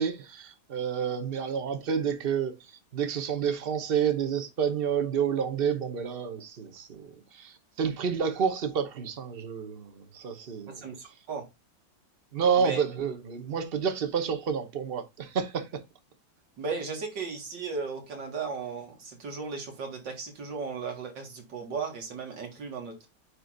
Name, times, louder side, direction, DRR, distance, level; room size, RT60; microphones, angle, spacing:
voice 1, 0.0-2.6 2.9-10.9 12.3-15.8, right 7 dB, 40° right, 0.9 m, -29 dB
voice 2, 10.7-11.5 12.6-12.8 16.6-23.1, right 5 dB, 70° right, 2.5 m, -36 dB
9.5 x 3.2 x 3.9 m
omnidirectional pair, 2.1 m